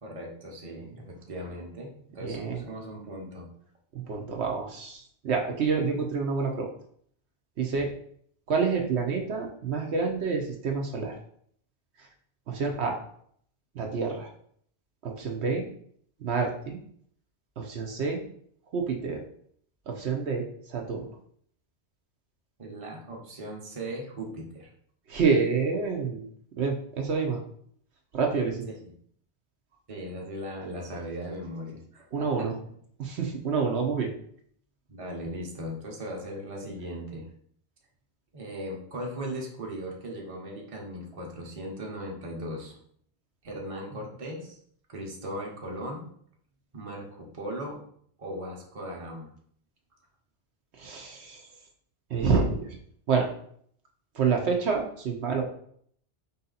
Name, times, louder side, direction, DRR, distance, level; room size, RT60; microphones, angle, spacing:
voice 1, 0.0-3.5 22.6-24.7 28.7-28.9 29.9-32.5 34.9-37.3 38.3-42.8 43.4-44.6 44.9-46.1 46.7-47.8 48.2-49.3, equal, 30° right, -1 dB, 0.9 m, -38 dB
voice 2, 2.2-2.6 3.9-6.7 7.6-7.9 8.5-11.2 12.5-13.0 13.7-14.3 15.0-15.7 16.2-16.8 17.6-18.2 18.7-19.2 19.9-21.0 25.1-26.3 26.6-27.4 28.1-28.6 32.1-32.5 33.0-34.1 50.8-51.4 52.1-52.6 53.1-53.3 54.1-55.5, right 5 dB, 70° right, 1 dB, 1.0 m, -28 dB
4.8 x 2.8 x 3.9 m, 0.62 s
omnidirectional pair, 1.2 m